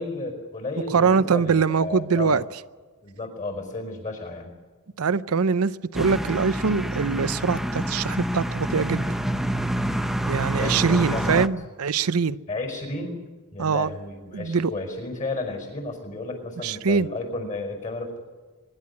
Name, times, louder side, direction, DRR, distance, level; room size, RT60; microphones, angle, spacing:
voice 1, 0.0-2.4 3.0-4.5 10.5-11.5 12.5-13.2 13.5-18.2, left 2 dB, 35° left, 4.9 m, -32 dB
voice 2, 0.9-2.4 5.0-9.1 10.3-12.4 13.6-13.9 14.3-14.7 16.6-17.1, right 5 dB, 85° right, 0.6 m, -23 dB
sound 1, 5.9-11.5, right 1 dB, ahead, 0.6 m, -27 dB
24.0 x 11.5 x 9.6 m
head